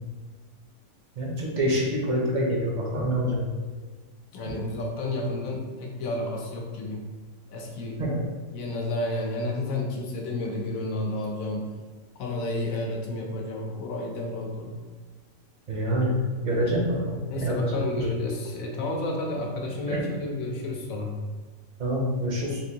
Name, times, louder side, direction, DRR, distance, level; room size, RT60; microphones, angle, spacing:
voice 1, 1.2-3.4 8.0-8.2 15.7-16.1 16.4-17.8 19.9-20.0 21.8-22.6, right 1 dB, 45° right, -2 dB, 0.6 m, -26 dB
voice 2, 4.3-7.1 7.5-8.0 8.5-11.8 12.2-14.8 17.3-21.1, left 2 dB, 85° left, 1 dB, 1.1 m, -31 dB
3.5 x 2.6 x 2.7 m, 1.4 s
omnidirectional pair, 1.4 m